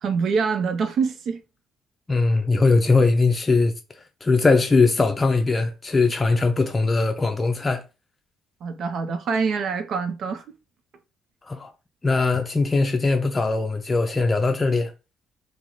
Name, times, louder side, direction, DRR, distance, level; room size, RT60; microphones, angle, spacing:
voice 1, 0.0-1.4 8.6-10.4, right 5 dB, 60° right, 0.6 m, -25 dB
voice 2, 2.1-3.7 4.2-7.8 11.5-11.7 12.0-14.9, left 3 dB, 25° left, 0.5 m, -20 dB
2.9 x 2.0 x 3.8 m
hypercardioid pair, 50°, 0 cm